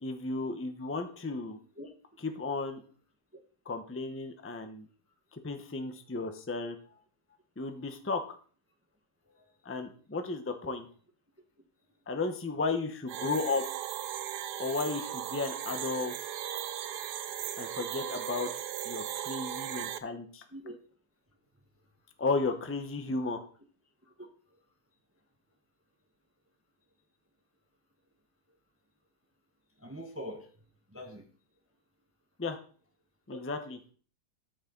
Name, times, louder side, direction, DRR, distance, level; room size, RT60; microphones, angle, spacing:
voice 1, 0.0-1.6 2.2-2.8 3.6-4.9 5.3-6.8 7.6-8.4 9.6-10.9 12.1-13.6 14.6-16.1 17.6-18.5 18.8-20.4 22.2-23.4 32.4-32.6 33.3-33.8, left 3 dB, 10° left, 6 dB, 0.7 m, -34 dB
sound 1, 13.1-20.0, right 11 dB, 75° right, 1.2 m, -37 dB
voice 2, 29.8-30.5 30.9-31.2 33.3-33.4, equal, 10° right, 2 dB, 1.2 m, -43 dB
13.0 x 6.6 x 3.9 m, 0.42 s
omnidirectional pair, 1.8 m